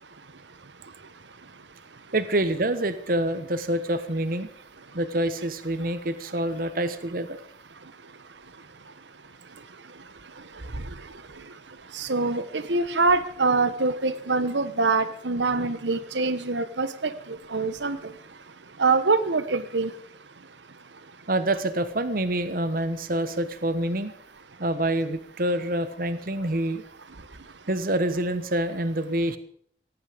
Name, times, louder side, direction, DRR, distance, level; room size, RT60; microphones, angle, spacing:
voice 1, 2.1-4.5 4.9-7.4 21.3-24.1 24.6-26.8 27.7-29.4, right 1 dB, 50° right, 12 dB, 1.2 m, -26 dB
voice 2, 11.9-17.1 17.5-18.0 18.8-19.9, right 3 dB, 90° right, 13 dB, 1.3 m, -24 dB
17.5 x 15.0 x 5.1 m, 0.63 s
head